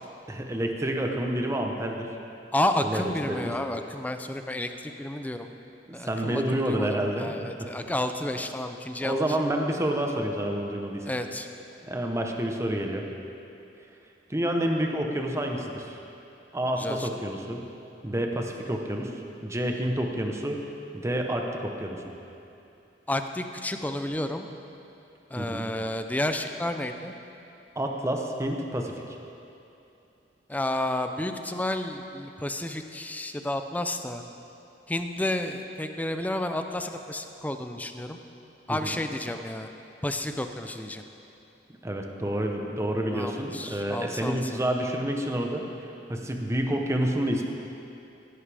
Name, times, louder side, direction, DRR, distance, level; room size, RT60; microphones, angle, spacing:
voice 1, 0.3-2.1 2.8-3.6 5.9-7.7 9.0-11.1 11.9-13.1 14.3-16.0 16.5-17.6 18.0-19.2 19.4-20.6 20.9-22.0 25.4-25.7 27.8-28.9 38.7-39.0 41.8-47.5, right 1 dB, 15° right, 2 dB, 0.8 m, -29 dB
voice 2, 2.5-5.5 5.9-9.2 11.1-11.5 16.8-17.1 23.1-24.5 25.3-27.1 30.5-34.2 34.9-38.2 38.7-39.7 40.0-41.0 43.1-44.6, left 1 dB, 10° left, 7 dB, 0.5 m, -31 dB
14.5 x 11.0 x 3.4 m, 2.8 s
head